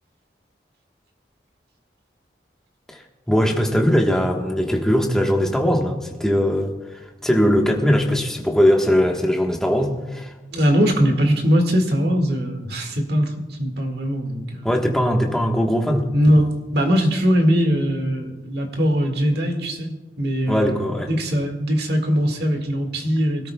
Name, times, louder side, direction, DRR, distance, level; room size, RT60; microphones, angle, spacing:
voice 1, 2.9-10.3 14.6-16.1 20.5-21.1, equal, 5° left, 1 dB, 1.3 m, -20 dB
voice 2, 10.5-14.7 16.1-16.4 16.7-19.9 20.2-20.8 21.1-23.5, equal, 65° right, 4 dB, 1.9 m, -20 dB
24.5 x 13.5 x 2.3 m, 1.2 s
head